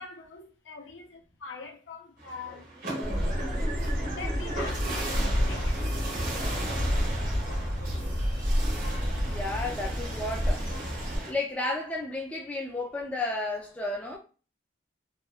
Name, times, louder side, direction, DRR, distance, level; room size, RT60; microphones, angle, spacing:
voice 1, 0.0-2.6 3.0-3.6 4.1-6.1, left 4 dB, 80° left, 0.5 m, -43 dB
sound 1, 2.2-11.3, right 2 dB, 45° right, 0.7 m, -37 dB
Bird, 3.0-11.2, equal, 80° right, 1.3 m, -29 dB
voice 2, 9.3-10.6 11.3-14.2, left 2 dB, 5° left, 0.3 m, -32 dB
2.8 x 2.2 x 2.3 m
head